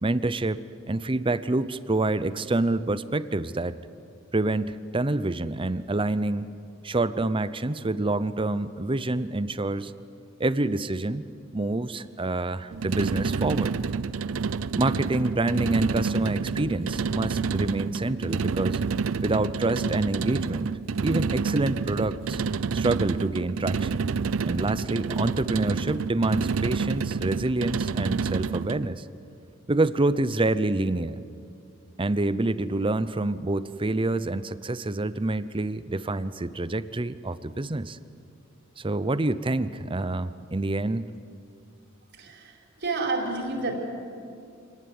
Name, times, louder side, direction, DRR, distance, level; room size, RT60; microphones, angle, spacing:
voice 1, 0.0-3.8 4.3-6.5 6.8-9.9 10.4-11.3 11.5-13.7 14.8-18.8 19.2-20.7 21.0-22.4 22.7-24.1 24.4-29.0 29.7-31.2 32.0-38.0 38.8-41.1, right 2 dB, 25° right, 14 dB, 0.7 m, -27 dB
Metal Ripple - machine like, 12.7-28.9, right 5 dB, 85° right, 0.5 m, -28 dB
voice 2, 42.1-43.8, right 3 dB, 55° right, 1 dB, 4.7 m, -30 dB
27.0 x 18.5 x 9.5 m, 2.5 s
head